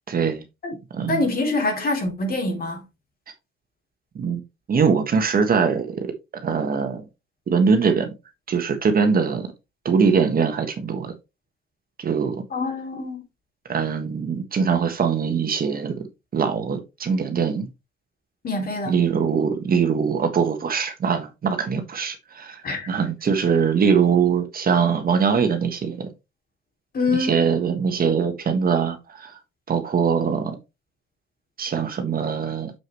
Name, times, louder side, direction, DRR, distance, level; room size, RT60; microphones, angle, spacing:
voice 1, 0.1-0.4 0.9-1.2 4.1-4.4 4.7-6.1 6.4-7.0 7.5-8.1 8.5-9.5 9.8-11.1 12.0-12.4 13.7-15.9 16.3-17.7 18.9-22.6 22.9-26.1 27.1-29.3 29.7-30.6 31.6-32.7, right 6 dB, 50° right, 1.5 m, -22 dB
voice 2, 1.1-2.8 12.5-13.2 18.4-19.0 22.6-22.9 26.9-27.5, left 2 dB, 50° left, 3.2 m, -25 dB
7.1 x 6.4 x 3.1 m
cardioid pair, 90°, 20 cm